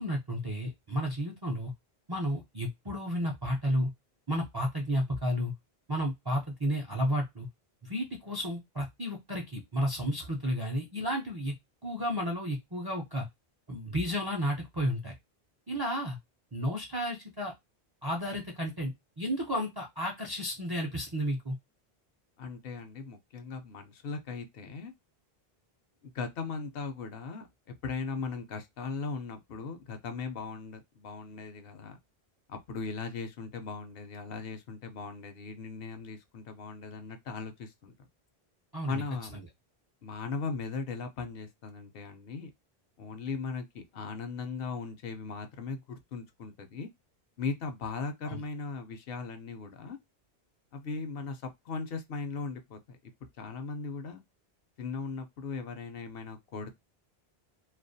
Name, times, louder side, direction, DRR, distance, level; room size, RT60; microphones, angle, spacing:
voice 1, 0.0-1.7 2.1-3.9 4.3-5.5 5.9-7.5 7.8-11.5 11.8-13.3 13.7-15.1 15.7-16.2 16.5-17.5 18.0-21.6 38.7-39.0 39.3-39.5 48.2-48.4, equal, 35° right, 0.4 m, -32 dB
voice 2, 22.4-24.9 26.0-27.5 27.8-32.0 32.5-37.9 38.9-39.4 40.0-42.5 43.0-46.9 47.4-50.0 50.7-53.0 53.4-54.2 54.8-56.7, left 4 dB, 70° left, 0.8 m, -38 dB
2.3 x 2.1 x 2.5 m
omnidirectional pair, 1.0 m